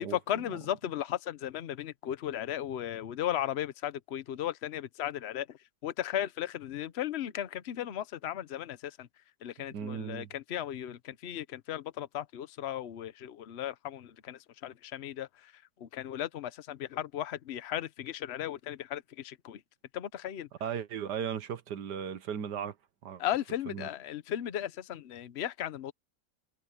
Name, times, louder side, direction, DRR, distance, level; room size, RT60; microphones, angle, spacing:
voice 1, 0.0-9.1 9.4-19.6 19.9-20.5 23.2-25.9, left 11 dB, 50° left, 0.8 m, -36 dB
voice 2, 9.7-10.3 20.6-22.7 23.0-23.2 23.7-23.9, right 8 dB, 70° right, 1.6 m, -36 dB
omnidirectional pair, 1.9 m